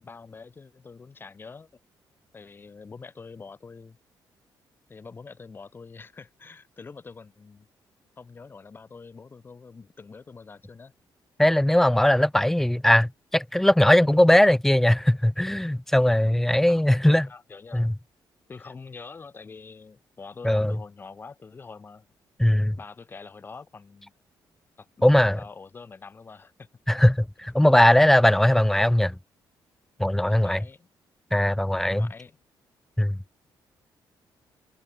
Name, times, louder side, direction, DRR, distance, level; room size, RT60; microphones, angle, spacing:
voice 1, 0.0-1.7 2.3-4.0 4.9-7.7 8.2-10.9 16.7-17.9 18.5-22.1 22.8-24.1 24.8-26.7 30.3-30.9 31.9-32.4, left 4 dB, 25° left, 2.6 m, -45 dB
voice 2, 11.4-17.3 17.7-17.9 20.4-20.7 22.4-22.8 25.0-25.4 26.9-29.1 30.0-30.6 31.3-32.1 33.0-33.2, left 1 dB, 5° left, 0.7 m, -19 dB
cardioid pair, 150°, 8 cm